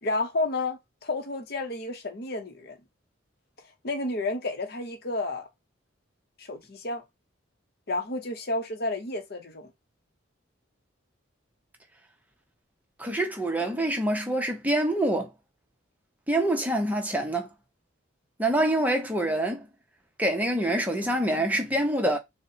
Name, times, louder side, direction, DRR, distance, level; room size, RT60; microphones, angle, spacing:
voice 1, 0.0-2.8 3.8-5.5 6.4-7.0 7.9-9.7, left 2 dB, 50° left, 0.8 m, -31 dB
voice 2, 13.0-15.3 16.3-17.5 18.4-19.7 20.2-22.2, right 1 dB, 10° right, 0.7 m, -26 dB
4.1 x 2.1 x 4.0 m
head